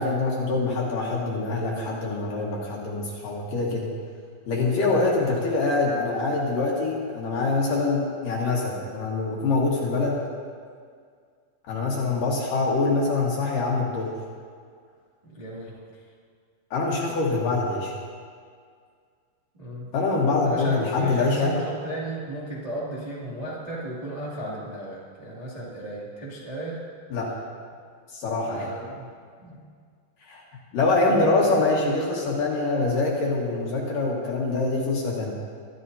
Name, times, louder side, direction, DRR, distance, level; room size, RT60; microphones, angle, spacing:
voice 1, 0.0-3.9 4.5-10.2 11.7-14.1 16.7-17.9 19.9-21.5 27.1-27.3 28.1-28.7 30.2-30.4 30.7-35.4, left 3 dB, 60° left, -3 dB, 2.7 m, -24 dB
voice 2, 4.6-5.4 15.2-15.8 19.5-19.9 20.4-26.8 28.5-29.1 29.4-29.6 30.7-31.2, right 1 dB, 20° right, -7 dB, 1.1 m, -35 dB
24.0 x 13.5 x 2.8 m, 2.1 s
omnidirectional pair, 5.3 m